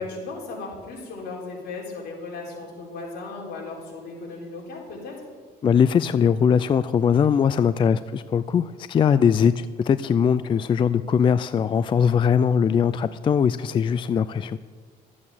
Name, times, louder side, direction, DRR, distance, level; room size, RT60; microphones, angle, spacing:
voice 1, 0.0-5.1, left 3 dB, 70° left, -2 dB, 4.1 m, -36 dB
voice 2, 5.6-14.6, left 7 dB, 30° left, 14 dB, 0.3 m, -21 dB
13.0 x 8.6 x 7.2 m, 1.5 s
cardioid pair, 110°, 17 cm